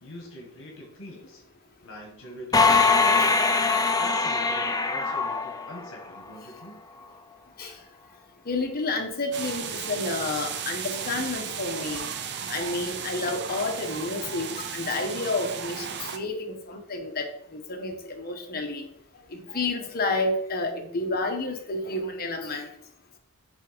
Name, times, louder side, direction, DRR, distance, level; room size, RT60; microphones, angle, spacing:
voice 1, 0.0-1.4 1.8-3.4 3.8-6.8, left 1 dB, 65° left, 0 dB, 1.7 m, -43 dB
sound 1, 2.5-6.2, left 4 dB, 15° left, 0.5 m, -22 dB
voice 2, 8.5-12.1 12.5-15.8 16.1-18.8 19.3-22.7, left 2 dB, 45° left, 3 dB, 1.2 m, -30 dB
sound 2, 9.3-16.2, right 7 dB, 50° right, 0.6 m, -35 dB
6.6 x 3.5 x 5.2 m, 0.68 s
head